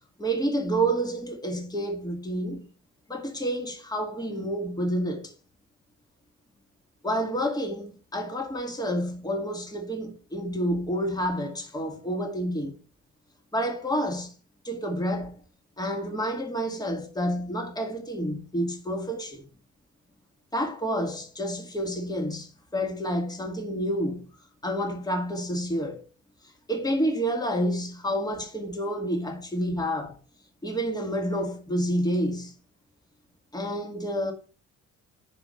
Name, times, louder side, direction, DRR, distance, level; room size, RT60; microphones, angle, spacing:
voice 1, 0.2-2.7 3.1-5.3 7.0-12.8 13.5-14.3 14.6-15.4 15.8-19.5 20.5-24.3 24.6-26.0 26.7-30.2 30.6-32.5 33.5-34.3, equal, 15° left, 1.8 m, -29 dB
5.5 x 4.9 x 6.4 m
cardioid pair, 90°, 30 cm